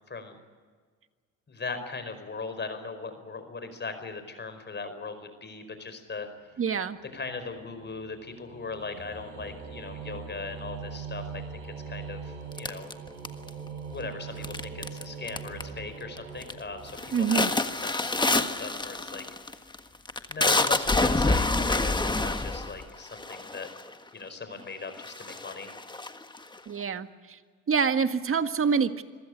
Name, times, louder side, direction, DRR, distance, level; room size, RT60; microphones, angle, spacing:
voice 1, 0.1-0.4 1.5-6.3 7.1-12.9 13.9-17.6 17.9-19.2 20.3-23.7 24.1-25.7, left 4 dB, 30° left, 9 dB, 4.9 m, -39 dB
voice 2, 6.6-7.0 17.1-17.5 26.7-27.4 27.7-29.0, right 6 dB, 40° right, 9 dB, 1.7 m, -26 dB
sound 1, 6.6-17.6, right 6 dB, 80° right, 7.9 m, -42 dB
sound 2, 12.6-13.7 14.4-15.0 15.3-15.8 16.2-16.5 16.9-23.9 24.6-24.7 25.0-26.6, left 2 dB, 15° left, 1.5 m, -27 dB
25.5 x 15.5 x 9.8 m, 1.5 s
supercardioid pair, 75°, 35 cm